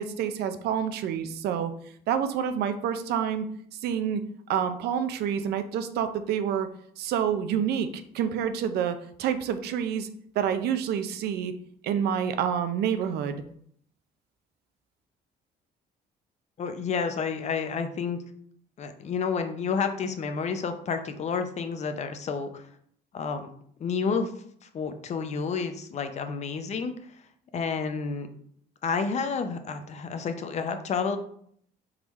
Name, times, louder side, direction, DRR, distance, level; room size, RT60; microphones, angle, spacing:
voice 1, 0.0-1.7 2.1-3.5 3.8-4.2 4.5-6.7 7.0-10.1 10.4-11.5 11.8-13.4, right 8 dB, 75° right, 9 dB, 0.5 m, -28 dB
voice 2, 16.6-18.2 18.8-22.6 23.1-23.5 23.8-24.3 24.7-26.9 27.5-28.3 28.8-31.2, left 5 dB, 40° left, 7 dB, 0.6 m, -30 dB
4.5 x 3.7 x 3.1 m, 0.65 s
cardioid pair, 110°, 17 cm